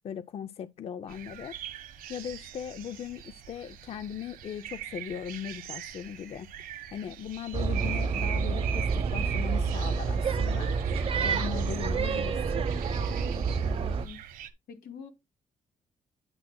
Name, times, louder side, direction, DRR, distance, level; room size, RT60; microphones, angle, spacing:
voice 1, 0.0-1.6 2.1-6.5 6.9-10.8 11.2-12.7, left 8 dB, 45° left, 0.5 m, -38 dB
sound 1, 1.1-14.5, right 11 dB, 85° right, 1.3 m, -42 dB
sound 2, 7.5-14.1, right 5 dB, 40° right, 0.9 m, -28 dB
voice 2, 13.1-14.2 14.7-15.1, left 6 dB, 85° left, 2.5 m, -46 dB
9.2 x 8.7 x 2.2 m
cardioid pair, 140°, 14 cm